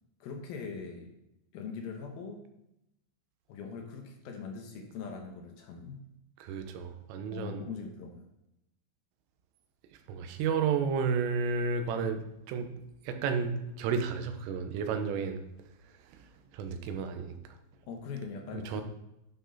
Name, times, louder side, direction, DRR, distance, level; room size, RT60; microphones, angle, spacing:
voice 1, 0.2-1.1 1.5-2.4 3.5-6.0 7.3-8.2 17.9-18.8, left 5 dB, 75° left, 2 dB, 2.3 m, -41 dB
voice 2, 6.4-7.6 10.1-12.7 13.1-15.4 16.5-17.4 18.5-18.8, right 5 dB, 85° right, 7 dB, 3.5 m, -32 dB
11.5 x 6.2 x 4.0 m, 0.87 s
omnidirectional pair, 5.6 m